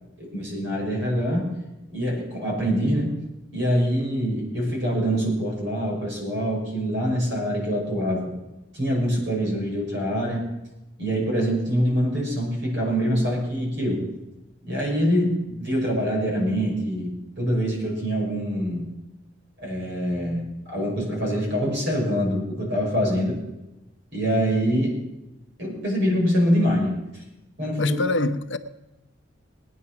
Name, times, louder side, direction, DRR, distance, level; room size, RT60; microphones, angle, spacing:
voice 1, 0.2-1.5 1.9-3.1 3.5-8.3 8.7-10.5 11.0-14.0 14.7-18.9 19.6-23.4 24.1-24.9 25.6-27.0 27.6-28.0, equal, 60° right, -1 dB, 5.8 m, -24 dB
voice 2, 27.8-28.6, left 2 dB, 60° left, 10 dB, 0.8 m, -24 dB
19.0 x 9.9 x 5.9 m, 0.97 s
head